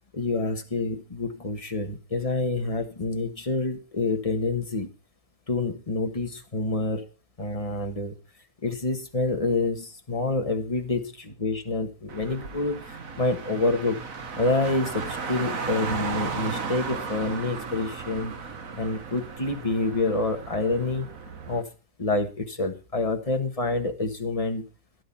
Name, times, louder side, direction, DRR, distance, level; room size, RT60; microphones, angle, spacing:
voice 1, 0.0-4.9 5.5-7.0 7.4-8.1 8.6-14.0 14.4-18.3 18.8-21.1 21.5-21.7 22.0-24.7, left 3 dB, 20° left, 5 dB, 1.6 m, -27 dB
Car, 12.1-21.6, right 4 dB, 55° right, 1.8 m, -35 dB
13.0 x 11.5 x 4.3 m, 0.34 s
omnidirectional pair, 1.8 m